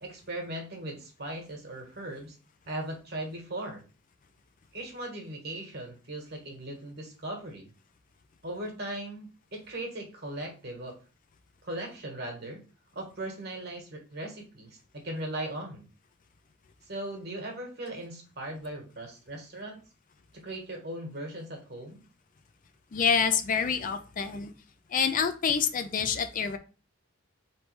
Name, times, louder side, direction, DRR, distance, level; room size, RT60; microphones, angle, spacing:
voice 1, 0.0-2.4 2.7-3.8 4.7-7.7 8.4-10.9 11.6-12.6 12.9-15.9 16.9-19.8 20.3-22.0, right 1 dB, 55° right, 1 dB, 1.4 m, -38 dB
voice 2, 22.9-24.5 24.9-26.6, left 6 dB, 40° left, 9 dB, 0.4 m, -27 dB
4.0 x 3.3 x 3.2 m, 0.35 s
head